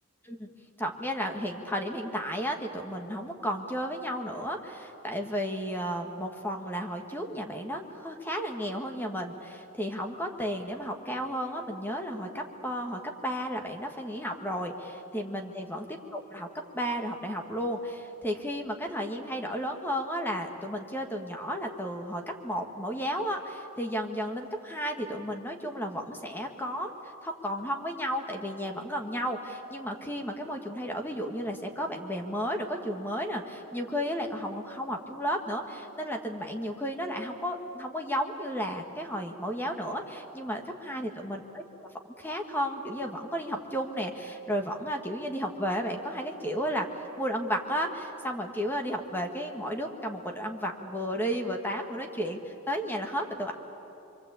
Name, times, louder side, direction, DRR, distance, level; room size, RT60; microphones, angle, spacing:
voice 1, 0.8-15.9 16.1-16.5 16.7-26.9 27.2-41.6 42.2-46.9 47.2-53.5, equal, 10° left, 3 dB, 1.9 m, -33 dB
26.5 x 23.5 x 8.5 m, 3.0 s
head